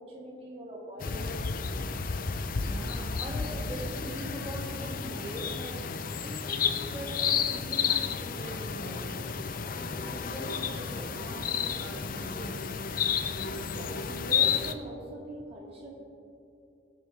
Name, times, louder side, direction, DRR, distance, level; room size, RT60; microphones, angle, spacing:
voice 1, 0.0-1.4 13.6-15.9, right 1 dB, 30° right, -3 dB, 2.0 m, -42 dB
sound 1, 1.0-14.7, left 6 dB, 45° left, 0.5 m, -31 dB
voice 2, 2.6-9.2 9.7-12.7, equal, 10° right, -6 dB, 2.7 m, -42 dB
18.5 x 8.0 x 3.4 m, 2.6 s
head